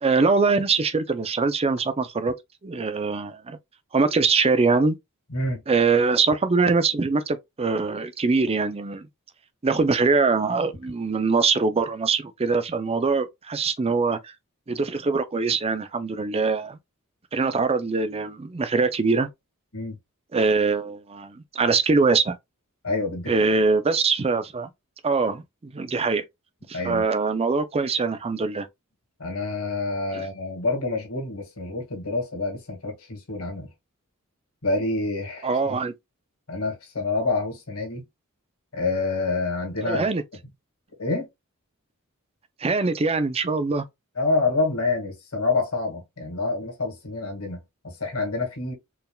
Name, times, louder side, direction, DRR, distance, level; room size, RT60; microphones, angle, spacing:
voice 1, 0.0-2.4 2.6-3.6 3.9-5.0 5.7-9.1 9.6-14.3 14.7-16.8 17.3-19.3 20.3-22.4 23.3-24.7 25.0-26.2 26.7-28.7 30.1-30.3 35.4-35.9 39.8-40.2 42.6-43.8, right 4 dB, 30° right, 0.5 m, -23 dB
voice 2, 5.3-5.6 19.7-20.0 22.8-23.3 26.7-27.0 29.2-33.7 34.6-35.8 36.5-38.0 38.7-40.1 41.0-41.3 44.2-48.7, left 3 dB, 90° left, 1.9 m, -27 dB
4.5 x 3.4 x 2.3 m
head